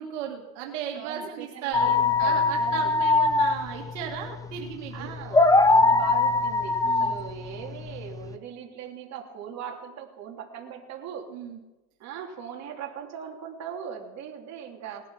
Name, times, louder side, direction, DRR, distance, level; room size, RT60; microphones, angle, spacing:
voice 1, 0.0-1.9 2.2-5.1 6.8-7.2 11.3-11.6, right 8 dB, 80° right, 1 dB, 2.2 m, -35 dB
voice 2, 0.9-2.9 4.9-11.4 12.0-15.1, right 8 dB, 45° right, 1 dB, 3.1 m, -39 dB
sound 1, 1.7-8.3, left 3 dB, 10° left, 0.8 m, -22 dB
19.0 x 12.0 x 5.8 m, 1.1 s
supercardioid pair, 125°, 37 cm